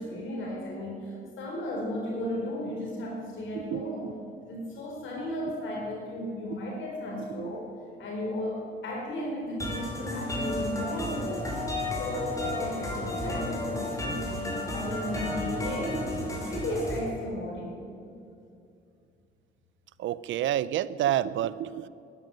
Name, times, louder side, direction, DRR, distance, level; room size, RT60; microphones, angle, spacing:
voice 1, 0.0-4.1 4.4-7.7 8.0-11.5 12.0-17.8, left 1 dB, 75° left, -2 dB, 4.3 m, -35 dB
voice 2, 3.7-4.1 20.0-21.9, right 12 dB, 75° right, 17 dB, 0.6 m, -29 dB
sound 1, 9.6-17.0, left 1 dB, 15° left, 4.4 m, -32 dB
13.0 x 10.5 x 9.3 m, 2.5 s
cardioid pair, 90°, 20 cm